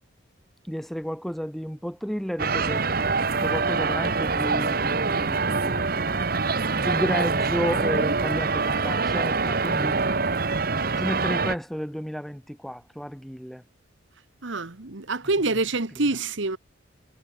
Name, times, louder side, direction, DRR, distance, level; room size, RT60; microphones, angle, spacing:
voice 1, 0.7-2.8 3.4-6.2 6.8-10.0 10.7-13.6, equal, ahead, 0.8 m, -32 dB
sound 1, 2.4-11.5, right 4 dB, 45° right, 1.1 m, -25 dB
voice 2, 14.4-16.6, right 3 dB, 70° right, 1.5 m, -26 dB
head